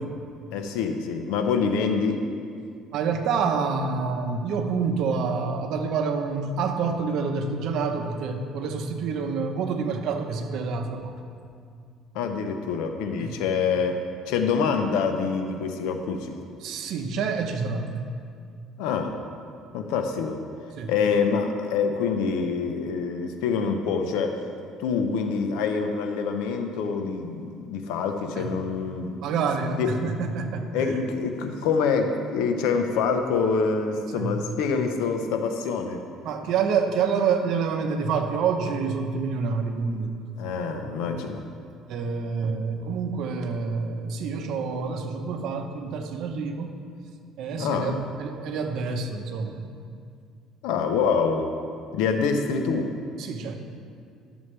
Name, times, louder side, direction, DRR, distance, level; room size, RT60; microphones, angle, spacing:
voice 1, 0.5-2.2 12.1-14.0 14.3-16.4 18.8-19.2 19.7-20.4 20.9-24.4 24.8-29.1 29.8-29.9 30.7-36.0 40.4-41.4 47.6-48.0 50.6-51.5 51.9-52.9, left 5 dB, 85° left, 6 dB, 0.8 m, -26 dB
voice 2, 2.9-11.2 13.2-13.4 16.6-17.9 20.8-20.9 28.3-28.5 29.2-31.0 34.1-34.4 36.2-40.6 41.9-46.7 47.4-49.7 53.2-53.6, right 5 dB, 65° right, 5 dB, 0.9 m, -27 dB
12.5 x 7.1 x 3.3 m, 2.3 s
cardioid pair, 125°, 0 cm